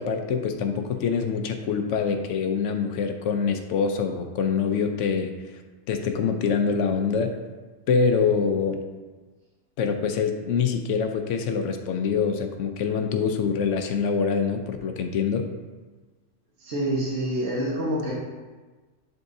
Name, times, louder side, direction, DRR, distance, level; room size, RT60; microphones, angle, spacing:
voice 1, 0.0-5.6 5.9-7.4 7.9-8.8 9.8-15.5, left 6 dB, 75° left, 6 dB, 1.0 m, -25 dB
voice 2, 16.6-18.1, right 1 dB, 65° right, -7 dB, 1.5 m, -27 dB
10.5 x 3.6 x 2.7 m, 1.3 s
omnidirectional pair, 1.3 m